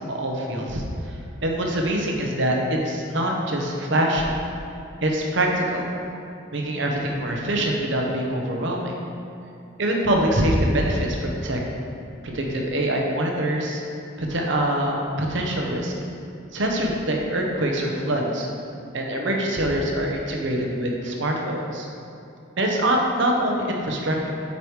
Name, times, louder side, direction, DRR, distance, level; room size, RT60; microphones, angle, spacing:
voice 1, 0.0-4.3 5.0-5.9 6.5-8.9 9.8-11.6 12.2-13.8 14.2-15.9 16.5-18.5 18.9-21.9 22.6-24.3, right 1 dB, 60° right, 0 dB, 0.9 m, -24 dB
8.1 x 4.9 x 3.1 m, 2.5 s
head